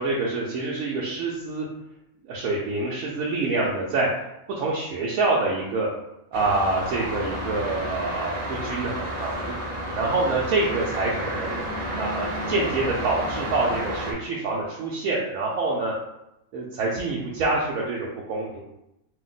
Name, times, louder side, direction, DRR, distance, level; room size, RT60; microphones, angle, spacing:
voice 1, 0.0-1.7 2.3-4.1 4.6-5.9 6.3-9.5 10.0-11.5 12.0-15.9 16.5-18.6, right 3 dB, 80° right, -4 dB, 1.0 m, -26 dB
sound 1, 6.3-14.1, equal, 65° right, 0.4 m, -31 dB
2.8 x 2.1 x 3.8 m, 0.86 s
omnidirectional pair, 1.5 m